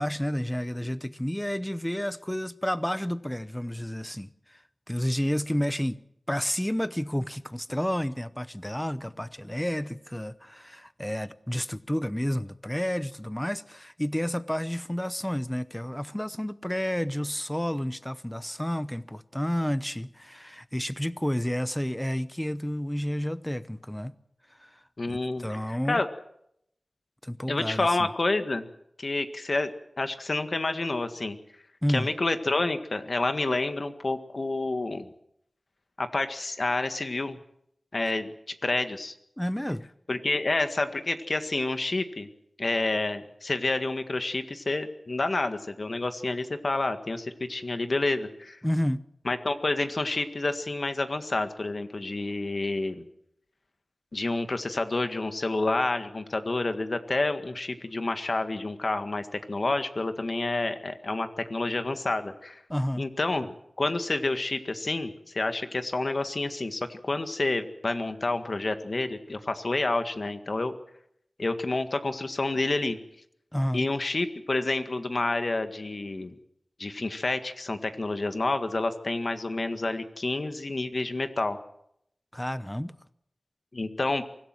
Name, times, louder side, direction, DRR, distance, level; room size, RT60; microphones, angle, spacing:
voice 1, 0.0-4.6 4.9-6.0 6.3-24.1 24.6-24.8 25.1-26.0 27.2-28.1 31.8-32.1 39.4-39.9 48.6-49.0 62.7-63.0 73.5-73.9 82.3-82.9, equal, 10° left, 0.8 m, -30 dB
voice 2, 25.0-26.1 27.5-28.6 29.0-29.7 30.0-31.4 31.9-35.1 36.0-37.4 37.9-39.1 40.1-42.3 42.6-48.6 49.2-53.0 54.1-62.6 63.0-63.5 63.8-70.7 71.4-73.0 73.7-76.3 76.8-81.6 83.7-84.2, left 2 dB, 55° left, 1.8 m, -29 dB
24.0 x 16.5 x 7.7 m
wide cardioid pair, 65°, 0 cm